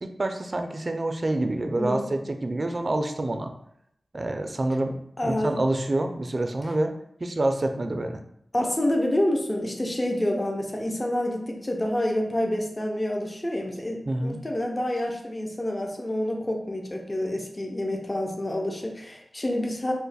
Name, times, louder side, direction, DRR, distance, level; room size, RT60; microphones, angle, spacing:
voice 1, 0.0-3.5 4.1-6.9 7.2-8.2 14.1-14.4, right 2 dB, 45° right, 6 dB, 0.3 m, -27 dB
voice 2, 1.8-2.1 5.2-5.7 8.5-19.9, left 1 dB, 30° left, 1 dB, 0.5 m, -28 dB
3.0 x 2.1 x 4.0 m, 0.74 s
wide cardioid pair, 60°, 0 cm